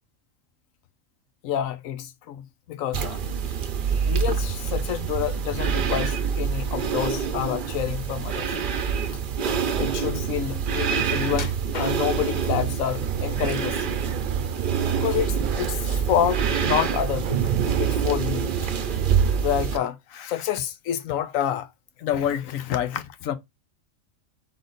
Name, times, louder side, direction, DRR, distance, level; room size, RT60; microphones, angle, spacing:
voice 1, 1.4-3.3 4.0-8.5 9.8-14.0 14.9-17.5 17.8-18.5 19.4-21.7 22.0-23.4, left 10 dB, 85° left, 1.0 m, -28 dB
sound 1, 2.9-19.8, right 7 dB, 50° right, 0.7 m, -26 dB
sound 2, 11.3-12.4 13.0-13.7 14.1-15.0 15.4-15.6 16.1-16.2, left 5 dB, 45° left, 0.6 m, -39 dB
sound 3, 12.9-19.4, right 9 dB, 85° right, 1.1 m, -36 dB
3.8 x 3.5 x 3.9 m
omnidirectional pair, 1.4 m